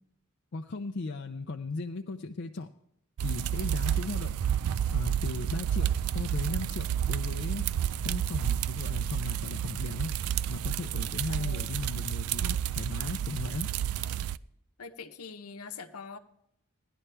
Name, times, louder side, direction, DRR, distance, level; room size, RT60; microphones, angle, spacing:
voice 1, 0.5-2.7 3.2-4.4 4.9-7.6 8.0-10.1 10.5-13.7, left 3 dB, 50° left, 4 dB, 0.5 m, -36 dB
sound 1, 3.2-14.4, right 10 dB, 80° right, 0.4 m, -30 dB
voice 2, 11.3-11.7 14.8-16.2, left 5 dB, 90° left, 9 dB, 0.9 m, -43 dB
17.0 x 11.0 x 3.4 m, 0.75 s
head